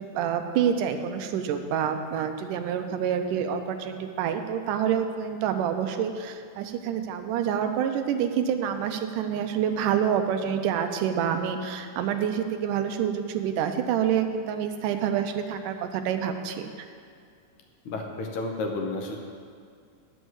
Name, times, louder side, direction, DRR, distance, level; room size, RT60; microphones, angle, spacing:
voice 1, 0.0-16.7, right 8 dB, 85° right, 7 dB, 2.2 m, -27 dB
voice 2, 17.9-19.1, left 2 dB, 70° left, 2 dB, 2.2 m, -31 dB
10.5 x 6.3 x 7.8 m, 2.2 s
omnidirectional pair, 3.7 m